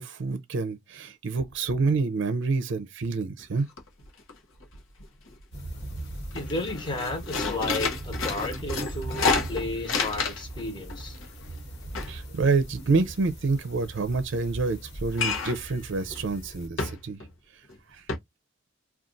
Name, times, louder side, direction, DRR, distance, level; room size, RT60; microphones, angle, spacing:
voice 1, 0.0-3.7 12.0-17.2 17.9-18.0, right 4 dB, 65° right, 0.5 m, -27 dB
sound 1, 3.4-3.5 3.8-4.3 4.6-5.4 5.8-6.0 6.3-10.6 10.9-13.3 15.1-15.7 16.1-16.3 16.8-17.3 17.7-17.8 18.1-18.2, left 4 dB, 80° left, 0.8 m, -30 dB
sound 2, 5.5-16.7, right 1 dB, 60° left, 1.4 m, -39 dB
voice 2, 6.3-11.1, left 2 dB, 25° left, 1.0 m, -33 dB
2.5 x 2.4 x 3.7 m
head